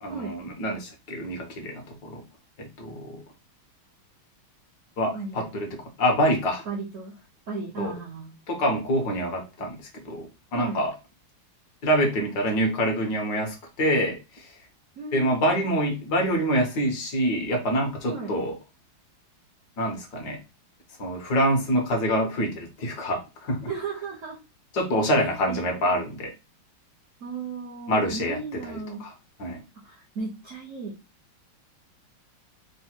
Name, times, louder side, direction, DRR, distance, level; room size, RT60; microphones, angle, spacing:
voice 1, 0.0-2.2 2.6-3.2 5.0-5.7 6.0-6.7 7.8-7.9 8.5-9.8 10.0-10.9 11.8-14.6 15.1-18.5 19.8-20.4 21.0-23.6 24.7-26.3 27.9-28.4 29.0-29.1 29.4-29.6, equal, 60° left, 2 dB, 1.4 m, -26 dB
voice 2, 5.1-5.5 6.7-7.2 7.5-8.3 10.5-10.8 15.0-15.8 18.1-18.4 23.7-24.4 25.1-26.1 27.2-29.0 29.7-31.0, right 4 dB, 65° right, 0 dB, 0.8 m, -36 dB
3.8 x 2.1 x 4.3 m, 0.27 s
omnidirectional pair, 2.2 m